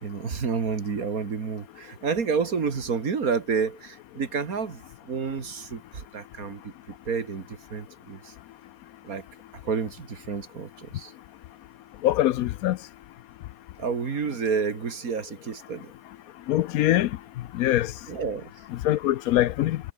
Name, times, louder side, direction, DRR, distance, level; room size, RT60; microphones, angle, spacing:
voice 1, 0.0-6.7 7.1-7.5 7.7-8.3 9.0-9.2 9.6-11.1 13.8-15.9 18.1-18.5, right 5 dB, 65° right, 2.4 m, -29 dB
voice 2, 12.0-12.8 16.5-17.1 17.6-17.9 18.8-19.8, left 13 dB, 75° left, 1.0 m, -22 dB
omnidirectional pair, 1.6 m